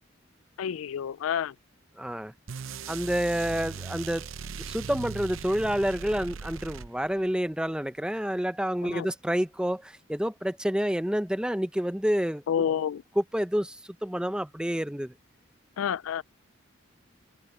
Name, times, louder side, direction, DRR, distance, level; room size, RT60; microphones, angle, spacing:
voice 1, 0.6-1.5 8.8-9.1 12.5-13.0 15.8-16.2, left 8 dB, 85° left, 0.4 m, -29 dB
voice 2, 2.0-2.3 2.9-4.3 4.7-12.4 13.2-15.1, equal, 5° right, 0.7 m, -28 dB
sound 1, 2.5-7.3, right 5 dB, 75° right, 0.7 m, -39 dB
head